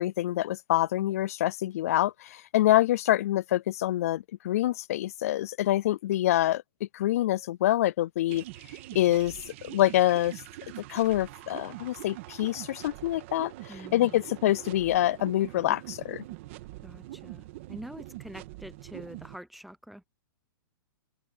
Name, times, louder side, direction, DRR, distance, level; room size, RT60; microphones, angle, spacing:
voice 1, 0.0-6.6 6.9-8.4 8.9-9.3 9.6-10.3 10.9-13.5 13.9-16.2, left 14 dB, 40° left, 0.3 m, -26 dB
sound 1, 8.3-19.4, right 17 dB, 35° right, 1.7 m, -44 dB
voice 2, 13.7-14.2 16.8-20.1, equal, ahead, 0.8 m, -45 dB
open air
hypercardioid pair, 170°, 12 cm